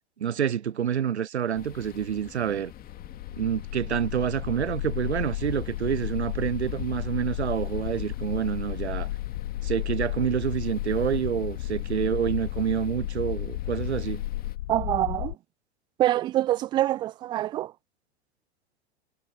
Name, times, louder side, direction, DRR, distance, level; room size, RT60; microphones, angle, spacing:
voice 1, 0.2-2.7 3.3-9.1 9.6-14.2, right 8 dB, 85° right, 0.5 m, -28 dB
sound 1, 1.5-14.6, left 11 dB, 25° left, 2.5 m, -47 dB
sound 2, 2.8-15.3, left 15 dB, 55° left, 0.6 m, -33 dB
voice 2, 14.7-15.4 16.0-17.7, right 14 dB, 15° right, 0.3 m, -25 dB
figure-of-eight pair, 90°, 33 cm